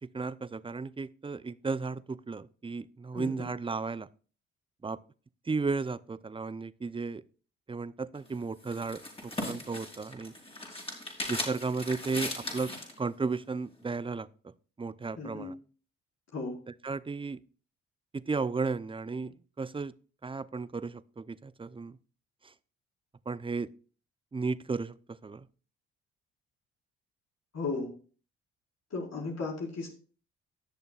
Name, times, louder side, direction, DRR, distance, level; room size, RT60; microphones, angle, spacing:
voice 1, 0.1-4.1 4.8-5.0 5.5-7.2 7.7-10.3 11.3-12.7 13.0-14.5 14.8-15.5 16.8-17.4 18.1-19.9 20.2-22.0 22.4-22.5 23.3-23.7 24.3-25.5, right 4 dB, 15° right, 0.6 m, -34 dB
voice 2, 3.1-3.5 15.2-15.5 16.3-16.6 27.5-27.9 28.9-29.9, left 3 dB, 50° left, 4.5 m, -35 dB
sound 1, 8.1-13.0, left 1 dB, 15° left, 4.6 m, -38 dB
18.5 x 6.8 x 2.4 m
hypercardioid pair, 50°, 33 cm